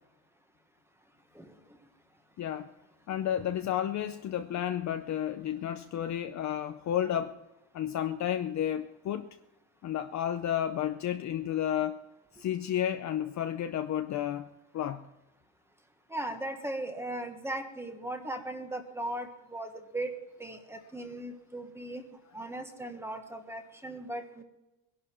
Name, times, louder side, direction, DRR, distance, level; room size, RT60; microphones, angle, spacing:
voice 1, 2.4-2.7 3.1-7.4 7.7-9.3 9.8-12.0 12.4-14.5 14.7-15.0, left 10 dB, 35° left, 0.6 m, -31 dB
voice 2, 16.1-20.1 20.4-22.0 22.3-24.4, right 1 dB, 5° right, 1.3 m, -38 dB
21.5 x 11.5 x 4.4 m
cardioid pair, 150°, 47 cm